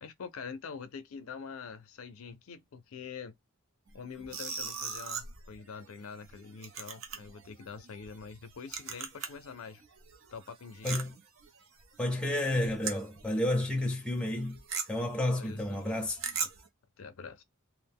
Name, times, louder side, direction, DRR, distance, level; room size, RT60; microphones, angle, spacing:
voice 1, 0.0-3.3 3.9-9.8 10.3-11.0 15.4-16.0 16.4-16.5 17.0-17.4, left 5 dB, 75° left, 0.4 m, -45 dB
sound 1, 3.9-9.5 9.8-13.5 13.8-13.9 14.2-16.7, right 6 dB, 65° right, 0.6 m, -40 dB
voice 2, 12.0-14.6 14.9-16.2, left 1 dB, 5° left, 0.6 m, -31 dB
2.4 x 2.1 x 3.4 m
head